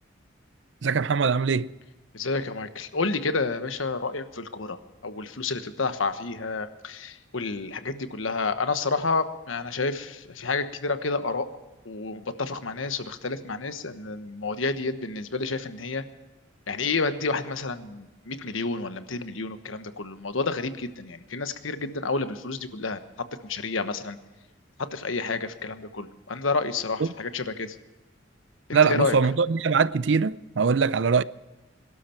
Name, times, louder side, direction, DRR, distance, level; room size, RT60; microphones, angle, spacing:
voice 1, 0.8-1.7 27.0-27.1 28.7-31.2, right 5 dB, 65° right, 0.5 m, -22 dB
voice 2, 2.1-4.8 5.0-11.5 11.8-16.0 16.7-24.2 24.8-27.8 28.7-29.1, left 3 dB, 90° left, 1.2 m, -30 dB
22.5 x 12.5 x 4.5 m
head